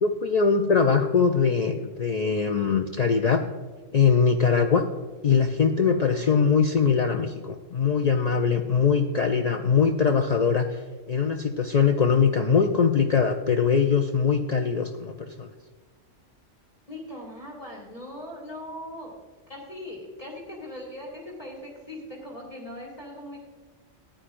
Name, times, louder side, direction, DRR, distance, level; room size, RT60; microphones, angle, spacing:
voice 1, 0.0-3.4 3.9-4.8 5.2-10.8 11.1-15.5, left 6 dB, 75° left, 5 dB, 0.3 m, -22 dB
voice 2, 16.9-19.1 19.5-23.4, left 1 dB, 25° left, -3 dB, 1.9 m, -40 dB
14.5 x 10.5 x 2.5 m, 1.4 s
omnidirectional pair, 1.3 m